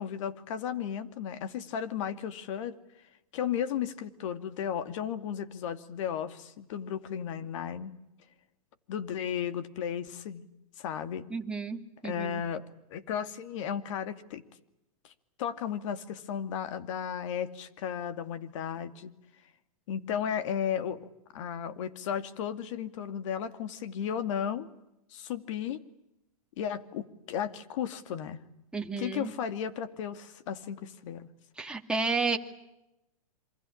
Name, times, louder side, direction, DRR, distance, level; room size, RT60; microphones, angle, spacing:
voice 1, 0.0-2.8 3.3-7.9 8.9-10.5 10.8-11.3 12.0-12.6 12.9-14.4 15.0-15.1 15.4-19.1 19.9-21.0 21.3-24.7 25.1-25.8 26.6-28.4 29.0-31.3, left 8 dB, 55° left, 11 dB, 2.5 m, -34 dB
voice 2, 11.3-12.4 28.7-29.3 31.6-32.4, right 4 dB, 5° right, 2 dB, 2.4 m, -32 dB
28.0 x 24.5 x 8.6 m, 0.89 s
hypercardioid pair, 135°, 19 cm